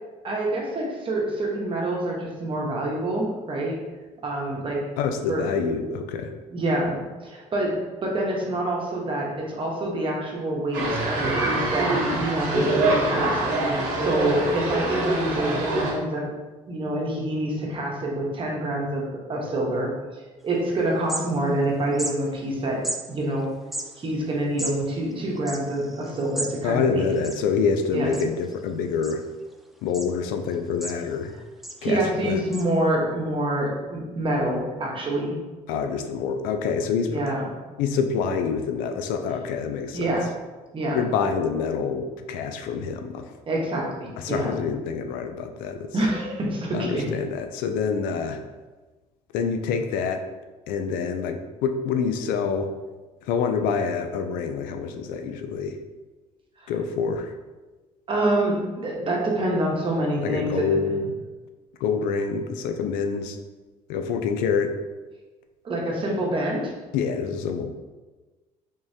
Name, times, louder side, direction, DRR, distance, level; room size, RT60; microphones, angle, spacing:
voice 1, 0.2-3.8 4.2-4.9 5.3-5.5 6.5-16.3 16.6-22.8 23.1-23.5 24.0-27.0 27.9-28.1 31.8-35.4 37.1-37.4 39.9-40.3 40.7-41.0 43.5-44.6 45.9-47.0 56.6-56.7 58.1-60.7 65.6-66.7, right 1 dB, 40° right, -2 dB, 1.0 m, -26 dB
voice 2, 5.0-6.3 26.6-29.2 29.8-31.3 31.8-32.4 35.7-37.2 37.8-40.1 40.9-43.4 44.2-45.9 46.7-48.4 49.3-50.2 50.7-52.7 53.3-55.8 56.7-57.3 60.2-61.1 61.8-63.4 63.9-64.8 66.9-67.7, left 6 dB, 85° left, 6 dB, 0.4 m, -26 dB
sound 1, 10.7-15.9, right 2 dB, 85° right, 0.9 m, -24 dB
sound 2, 20.5-20.6 20.9-21.7 21.9-22.1 22.8-23.0 23.6-26.6 26.9-27.0 27.1-27.8 28.1-28.5 29.0-29.5 29.9-30.1 30.5-31.3 31.6-31.8 32.5-32.6, right 1 dB, ahead, 0.4 m, -34 dB
3.6 x 3.1 x 2.7 m, 1.2 s
supercardioid pair, 85°, 14 cm